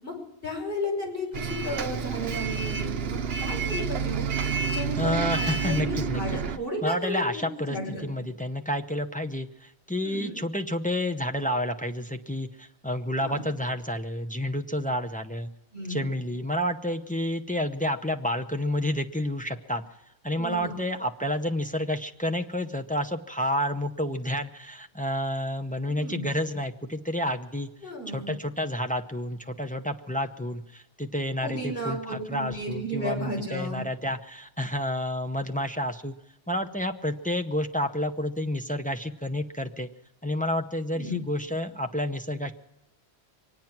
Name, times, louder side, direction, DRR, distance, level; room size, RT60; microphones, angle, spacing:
voice 1, 0.4-4.3 4.6-8.2 10.0-10.4 13.2-13.4 15.7-16.1 20.4-20.9 25.9-26.3 27.8-28.4 31.4-33.8 40.9-41.2, equal, 55° left, -3 dB, 5.4 m, -34 dB
Bus, 1.3-6.6, right 6 dB, 65° right, 0.9 m, -29 dB
voice 2, 5.0-6.2 6.8-15.5 15.9-19.8 20.2-27.7 28.1-36.2 36.5-39.9 40.2-42.5, left 1 dB, 10° left, 5 dB, 0.6 m, -30 dB
24.0 x 9.3 x 5.9 m, 0.88 s
omnidirectional pair, 1.1 m